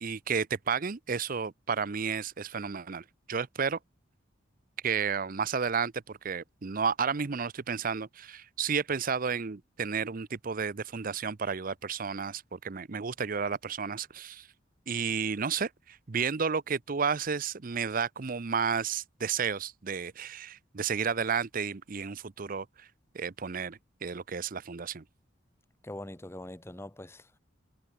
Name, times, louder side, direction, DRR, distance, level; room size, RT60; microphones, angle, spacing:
voice 1, 0.0-3.8 4.8-14.5 14.9-22.9 23.1-25.0, right 6 dB, 45° right, 0.6 m, -32 dB
voice 2, 25.8-27.4, left 1 dB, 15° left, 0.9 m, -43 dB
head